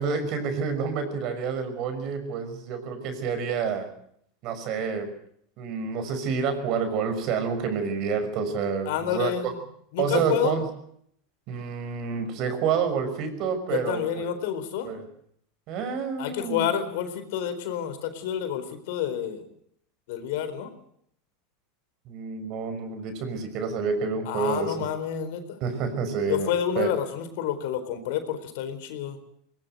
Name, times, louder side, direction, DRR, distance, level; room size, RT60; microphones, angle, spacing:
voice 1, 0.0-3.9 4.4-5.1 5.6-9.5 10.0-10.7 11.5-14.3 14.8-15.1 15.7-16.7 22.1-24.9 25.6-26.9, right 5 dB, 55° right, 9 dB, 5.9 m, -28 dB
voice 2, 8.9-9.6 9.9-10.6 13.7-14.9 16.2-19.4 20.1-20.7 24.3-25.6 26.3-29.2, left 10 dB, 70° left, 10 dB, 4.1 m, -29 dB
21.0 x 19.5 x 8.0 m, 0.68 s
supercardioid pair, 110°, 0 cm